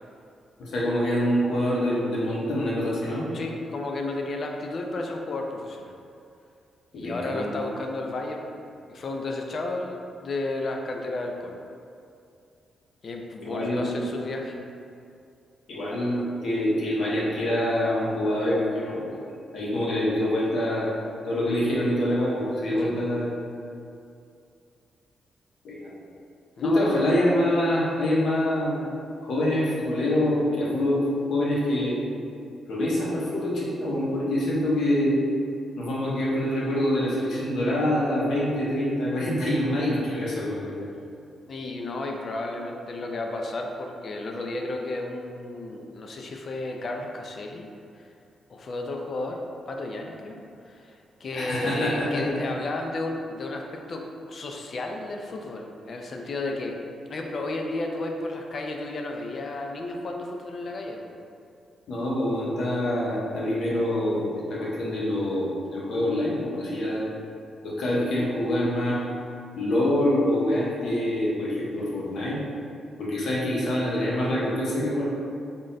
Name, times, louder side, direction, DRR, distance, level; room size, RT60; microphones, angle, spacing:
voice 1, 0.6-3.3 6.9-7.7 13.4-14.0 15.7-19.2 19.5-20.9 21.3-23.4 25.6-25.9 26.6-28.8 29.2-31.0 31.3-32.0 32.7-35.1 35.8-40.8 51.3-52.4 61.9-64.2 64.5-67.0 67.6-69.0 69.6-72.4 73.0-75.0, left 1 dB, 65° left, -6 dB, 0.9 m, -25 dB
voice 2, 3.3-5.9 6.9-8.6 8.9-11.6 13.0-14.6 22.8-23.1 26.6-26.9 41.5-47.7 48.0-48.1 48.5-49.4 49.7-50.4 50.6-50.9 51.2-56.8 57.1-61.1 67.2-67.3, left 2 dB, 40° left, 2 dB, 0.3 m, -33 dB
3.6 x 2.1 x 3.9 m, 2.5 s
cardioid pair, 145°, 0 cm